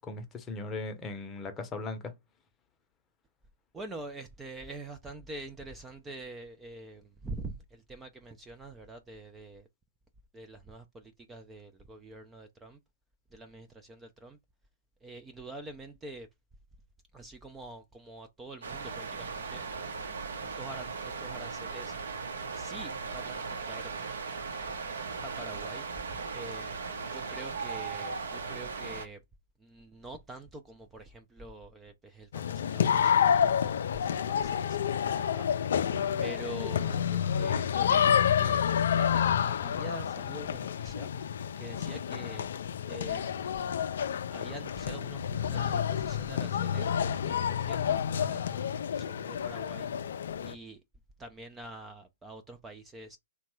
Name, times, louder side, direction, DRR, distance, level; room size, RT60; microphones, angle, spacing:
voice 1, 0.1-2.1, left 3 dB, 20° left, 0.7 m, -38 dB
voice 2, 3.7-9.7 10.3-12.8 13.3-14.4 15.0-16.3 17.1-19.6 20.4-22.2 22.5-23.9 25.2-25.9 26.3-26.9 27.1-29.2 29.6-35.5 36.2-41.1 41.6-42.5 42.9-43.6 44.3-50.8 51.2-53.2, right 2 dB, 15° right, 0.4 m, -46 dB
sound 1, 18.6-29.1, right 4 dB, 75° right, 0.8 m, -38 dB
sound 2, 32.3-50.5, left 8 dB, 65° left, 0.3 m, -29 dB
2.8 x 2.2 x 3.0 m
hypercardioid pair, 120°, 0 cm